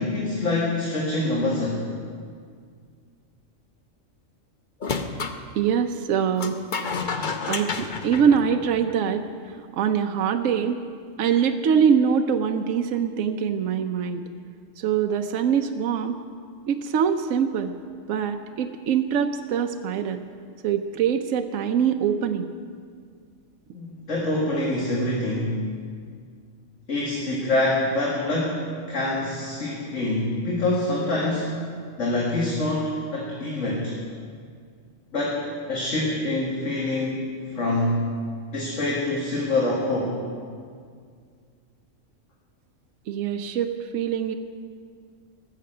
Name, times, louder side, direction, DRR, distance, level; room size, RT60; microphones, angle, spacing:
voice 1, 0.0-1.8 23.7-25.7 26.9-31.5 32.0-33.9 35.1-37.3 37.5-38.1 38.5-40.2, left 2 dB, 65° left, -4 dB, 2.1 m, -25 dB
sound 1, 4.8-5.4 6.4-9.1, left 4 dB, 45° left, 0.8 m, -30 dB
voice 2, 5.6-6.6 7.5-10.8 11.2-14.2 14.8-16.2 16.7-17.7 18.1-20.2 20.6-22.5 43.1-44.3, right 7 dB, 75° right, 6 dB, 1.0 m, -23 dB
19.0 x 6.7 x 7.7 m, 2.1 s
omnidirectional pair, 1.4 m